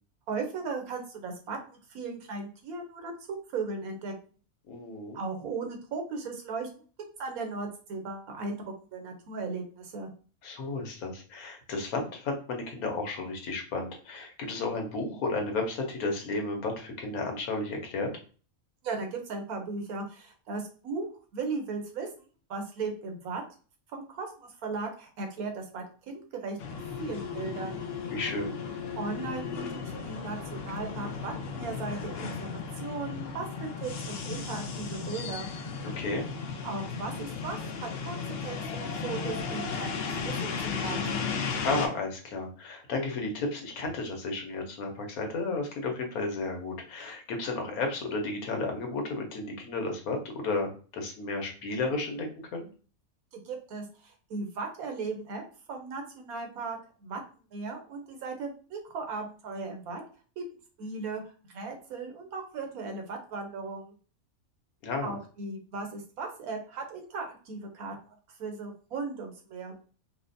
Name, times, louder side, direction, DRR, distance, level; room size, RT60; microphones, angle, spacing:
voice 1, 0.3-4.1 5.1-6.7 7.2-8.6 8.9-10.1 18.8-21.1 21.3-22.1 22.5-23.4 23.9-26.6 27.0-27.8 28.9-35.5 36.6-38.2 38.4-41.0 53.3-55.4 55.7-57.2 57.5-60.0 60.4-60.5 60.8-61.2 61.5-63.9 65.0-69.7, right 4 dB, 80° right, 3 dB, 1.2 m, -37 dB
voice 2, 4.7-5.2 10.4-18.1 28.1-28.5 35.8-36.2 41.6-52.7 64.8-65.1, left 3 dB, 85° left, 3 dB, 1.3 m, -33 dB
sound 1, 26.6-41.9, left 5 dB, 65° left, 0.6 m, -35 dB
4.2 x 2.0 x 2.6 m, 0.39 s
omnidirectional pair, 1.5 m